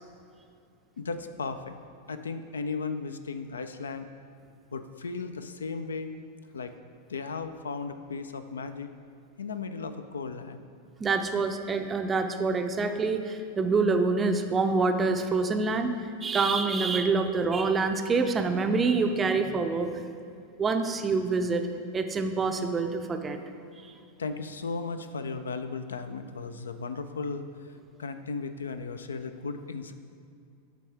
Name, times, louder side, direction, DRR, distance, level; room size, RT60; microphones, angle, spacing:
voice 1, 1.0-1.8 2.1-4.1 4.7-6.1 6.5-6.7 7.1-8.9 9.4-10.6 24.2-27.7 28.0-29.9, left 4 dB, 70° left, 10 dB, 0.3 m, -35 dB
voice 2, 11.0-16.0 16.2-19.9 20.6-21.7 21.9-23.4, right 4 dB, 20° right, 6 dB, 0.4 m, -26 dB
8.4 x 3.4 x 4.6 m, 2.4 s
figure-of-eight pair, 90°, 0 cm